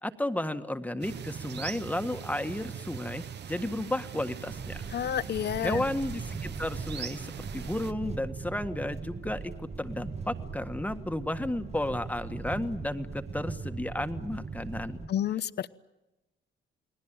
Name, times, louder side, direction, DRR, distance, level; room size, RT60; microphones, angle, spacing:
voice 1, 0.0-4.8 5.6-15.1, left 1 dB, 5° left, 8 dB, 1.6 m, -33 dB
sound 1, 1.0-7.9, right 8 dB, 60° right, 1.1 m, -41 dB
sound 2, 4.5-15.1, right 4 dB, 35° right, 1.5 m, -40 dB
voice 2, 4.9-5.8 15.1-15.7, left 10 dB, 60° left, 14 dB, 1.0 m, -30 dB
29.5 x 20.0 x 9.0 m, 0.97 s
cardioid pair, 90°, 20 cm